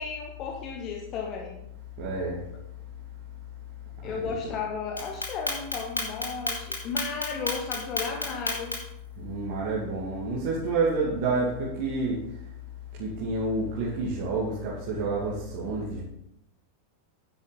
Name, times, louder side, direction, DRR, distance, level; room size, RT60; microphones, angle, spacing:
voice 1, 0.0-1.6 4.0-8.8, left 5 dB, 35° left, 2 dB, 1.4 m, -34 dB
voice 2, 2.0-2.4 4.0-4.3 9.2-12.2 13.0-16.0, right 3 dB, 45° right, -4 dB, 2.5 m, -29 dB
Clock, 5.0-9.0, left 2 dB, 80° left, 2.8 m, -30 dB
10.5 x 9.6 x 4.2 m, 0.79 s
figure-of-eight pair, 90°, 0 cm